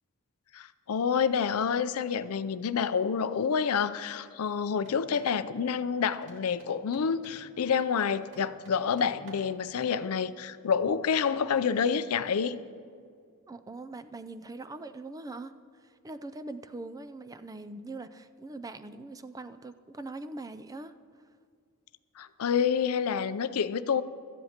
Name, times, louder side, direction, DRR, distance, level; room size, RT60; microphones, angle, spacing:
voice 1, 0.5-12.6 22.2-24.0, left 6 dB, 75° left, 13 dB, 0.5 m, -28 dB
sound 1, 4.8-5.4 6.1-7.5 8.2-9.6, right 1 dB, 60° right, 2.5 m, -55 dB
voice 2, 13.5-20.9, right 2 dB, 15° right, 11 dB, 0.4 m, -42 dB
17.0 x 13.5 x 2.9 m, 2.2 s
head